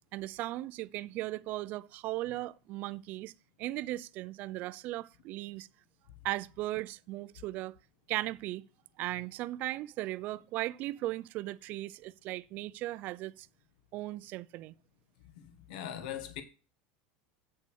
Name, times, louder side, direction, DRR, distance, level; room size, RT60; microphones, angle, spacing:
voice 1, 0.1-3.3 3.6-5.7 6.2-7.8 8.1-8.6 9.0-13.5 13.9-14.7, right 17 dB, 40° right, 0.5 m, -37 dB
voice 2, 15.7-16.4, left 10 dB, 75° left, 1.6 m, -39 dB
8.5 x 6.8 x 6.3 m
supercardioid pair, 160°, 5 cm